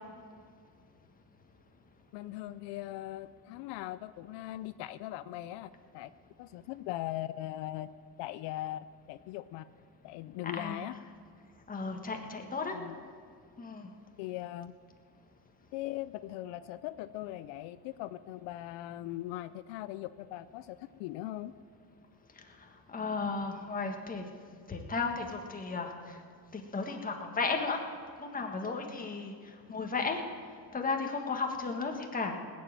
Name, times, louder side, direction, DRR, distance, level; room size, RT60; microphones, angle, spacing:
voice 1, 2.1-6.1 6.4-7.9 8.2-8.8 9.1-9.6 10.0-10.9 12.7-13.0 14.2-14.7 15.7-21.5, left 15 dB, 85° left, 14 dB, 0.6 m, -40 dB
voice 2, 10.4-10.9 11.7-12.8 13.6-13.9 22.9-24.3 24.7-26.2 26.5-27.8 28.2-29.3 29.7-30.2 30.7-32.4, left 4 dB, 20° left, 3 dB, 1.6 m, -34 dB
18.5 x 7.5 x 9.0 m, 2.1 s
cardioid pair, 130°, 41 cm